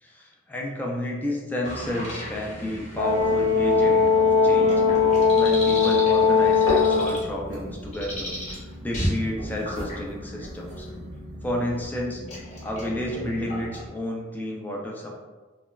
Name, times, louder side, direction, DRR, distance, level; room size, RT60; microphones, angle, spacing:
voice 1, 0.0-4.8 5.3-10.9 11.4-12.2 12.6-15.2, left 1 dB, 10° left, -1 dB, 0.3 m, -31 dB
sound 1, 1.6-13.9, equal, 35° left, 0.8 m, -35 dB
Brass instrument, 3.0-7.2, left 5 dB, 60° right, 0.6 m, -19 dB
sound 2, 6.4-11.9, equal, 90° right, 0.9 m, -35 dB
3.1 x 2.2 x 2.2 m, 1.3 s
head